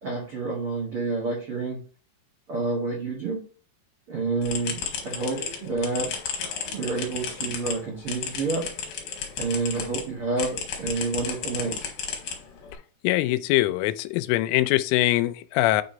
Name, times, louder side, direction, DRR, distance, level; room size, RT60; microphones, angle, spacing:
voice 1, 0.0-1.8 2.5-3.4 4.1-6.1 6.7-8.7 9.4-11.8, right 3 dB, 75° right, 1.2 m, -29 dB
sound 1, 4.4-10.0 10.4-12.7, left 7 dB, 60° left, 3.1 m, -33 dB
voice 2, 13.0-15.8, left 16 dB, 90° left, 3.1 m, -23 dB
9.5 x 3.2 x 5.1 m
omnidirectional pair, 5.6 m